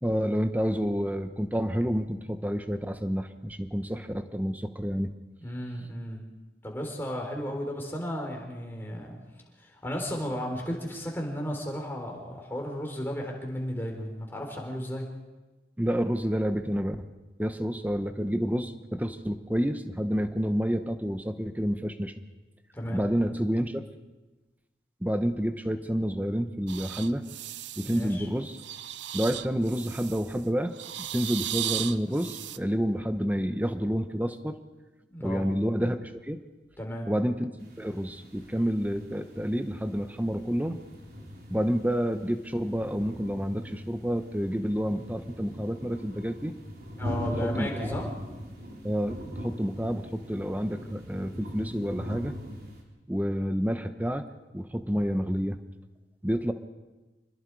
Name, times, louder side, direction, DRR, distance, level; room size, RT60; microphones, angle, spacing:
voice 1, 0.0-5.1 15.8-17.0 17.4-22.1 22.9-23.8 25.0-27.2 27.8-28.6 29.1-30.7 31.1-34.6 35.2-36.4 37.1-40.8 41.5-46.5 47.4-48.0 48.8-52.3 53.1-54.2 54.5-55.6 56.2-56.5, equal, 10° right, 8 dB, 1.0 m, -29 dB
voice 2, 5.4-6.2 6.6-9.2 9.6-15.1 22.7-23.0 27.8-28.3 35.1-35.5 36.8-37.1 47.0-48.1, equal, 10° left, 0 dB, 4.0 m, -34 dB
sound 1, 26.7-28.1 28.5-30.4 30.7-32.6, right 12 dB, 85° right, 0.7 m, -36 dB
sound 2, 37.6-52.8, equal, 55° right, 3.8 m, -41 dB
26.5 x 21.0 x 4.8 m, 1.2 s
head